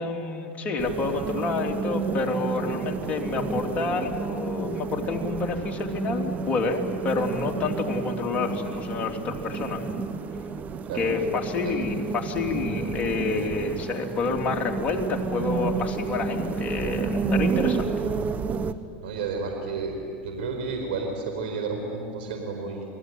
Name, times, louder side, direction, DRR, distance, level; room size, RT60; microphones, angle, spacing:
voice 1, 0.0-10.0 10.9-18.1, left 4 dB, 30° left, 1 dB, 3.5 m, -29 dB
sound 1, 0.8-18.7, right 5 dB, 30° right, 1.3 m, -30 dB
voice 2, 19.0-22.8, right 4 dB, 80° right, 3 dB, 4.8 m, -31 dB
29.5 x 20.5 x 9.6 m, 2.3 s
supercardioid pair, 110°, 5 cm